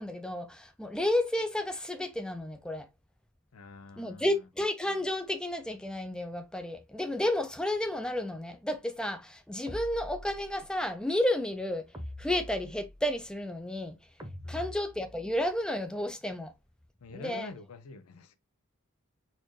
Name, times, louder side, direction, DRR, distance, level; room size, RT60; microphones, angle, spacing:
voice 1, 0.0-2.9 4.0-11.9 12.2-14.0 14.5-16.5 17.1-17.5, left 1 dB, 5° left, 0.4 m, -32 dB
voice 2, 3.5-4.3 14.4-14.7 17.0-18.4, left 3 dB, 80° left, 0.5 m, -46 dB
sound 1, 9.7-10.7 11.9-13.2 14.2-15.5, equal, 15° right, 0.8 m, -44 dB
4.2 x 2.6 x 3.0 m
head